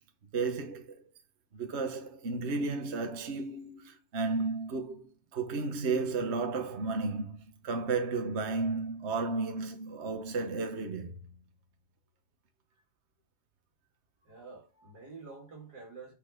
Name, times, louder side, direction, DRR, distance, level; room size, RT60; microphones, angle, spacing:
voice 1, 0.3-1.0 1.5-11.2, right 4 dB, 45° right, 1.4 m, -33 dB
voice 2, 14.2-16.1, right 4 dB, 85° right, 3.4 m, -48 dB
8.9 x 4.2 x 5.2 m
omnidirectional pair, 1.7 m